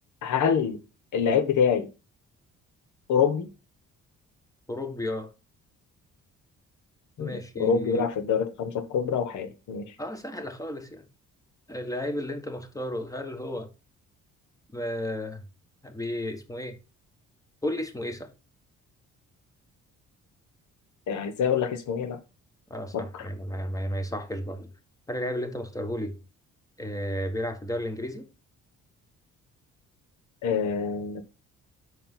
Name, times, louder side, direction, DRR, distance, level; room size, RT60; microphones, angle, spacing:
voice 1, 0.2-0.8 1.1-1.9 3.1-3.5 7.2-9.9 21.1-22.2 22.9-23.3 30.4-31.2, left 7 dB, 75° left, 1.3 m, -26 dB
voice 2, 4.7-5.3 7.2-8.1 10.0-11.0 11.7-13.7 14.7-15.4 15.8-16.8 17.6-18.3 22.7-24.7 25.1-26.2 26.8-28.3, left 1 dB, 10° left, 1.5 m, -33 dB
6.2 x 4.5 x 5.6 m
cardioid pair, 90°, 30 cm